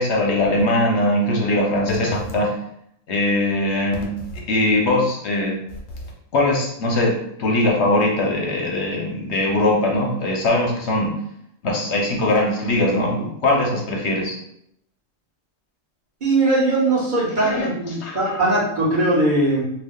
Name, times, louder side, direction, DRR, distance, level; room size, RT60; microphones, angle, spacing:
voice 1, 0.0-2.5 3.1-4.1 4.5-5.6 6.3-11.1 11.6-14.3 17.4-17.7 18.0-18.4, left 1 dB, 60° left, -1 dB, 0.9 m, -21 dB
voice 2, 16.2-19.7, right 2 dB, 40° right, -5 dB, 0.9 m, -20 dB
2.7 x 2.3 x 3.5 m, 0.74 s
omnidirectional pair, 1.5 m